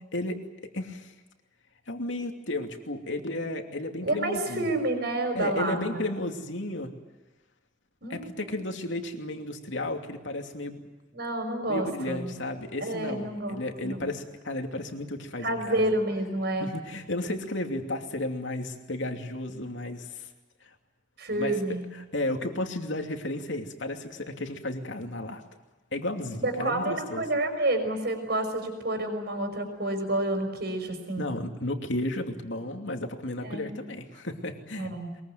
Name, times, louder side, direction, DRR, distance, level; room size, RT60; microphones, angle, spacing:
voice 1, 0.7-1.1 1.9-4.7 5.3-6.9 8.1-10.8 11.7-15.9 16.6-20.3 21.3-21.6 21.9-25.4 25.9-27.2 31.1-34.9, left 1 dB, 75° left, 4 dB, 2.7 m, -33 dB
voice 2, 4.0-6.0 8.0-8.5 11.1-12.4 12.8-14.1 15.4-16.7 21.2-21.8 26.4-31.3 33.4-33.7 34.8-35.1, right 1 dB, 55° right, 6 dB, 5.8 m, -29 dB
22.5 x 22.0 x 9.3 m, 1.1 s
head